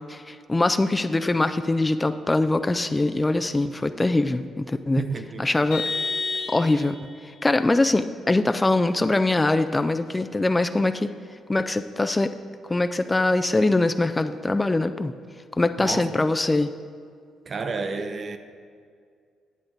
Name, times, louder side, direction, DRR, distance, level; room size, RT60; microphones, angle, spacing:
voice 1, 0.1-5.0 5.4-5.8 6.5-7.0 7.4-11.1 11.5-12.3 12.6-15.1 15.6-16.7, left 2 dB, 15° left, 0.3 m, -22 dB
voice 2, 5.0-5.5 15.8-16.2 17.5-18.4, right 4 dB, 40° right, 0.7 m, -30 dB
Vehicle horn car horn honking, 5.7-7.1, left 4 dB, 80° left, 1.7 m, -29 dB
10.0 x 8.5 x 4.0 m
cardioid pair, 90°, 0 cm